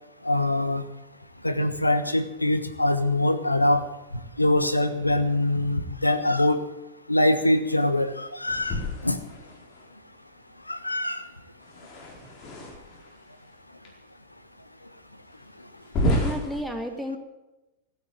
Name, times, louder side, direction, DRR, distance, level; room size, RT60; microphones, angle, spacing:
voice 1, 0.2-0.8 1.4-3.8 4.4-6.6 7.1-9.2 10.7-11.3, left 1 dB, 85° left, 11 dB, 1.2 m, -23 dB
sound 1, 8.5-9.8 11.6-13.1 13.8-13.9 14.6-14.7 15.8-16.6, left 1 dB, 35° left, 4.6 m, -30 dB
voice 2, 16.0-17.2, equal, ahead, 4 dB, 1.9 m, -32 dB
16.0 x 8.9 x 8.9 m, 0.99 s
figure-of-eight pair, 90°, 0 cm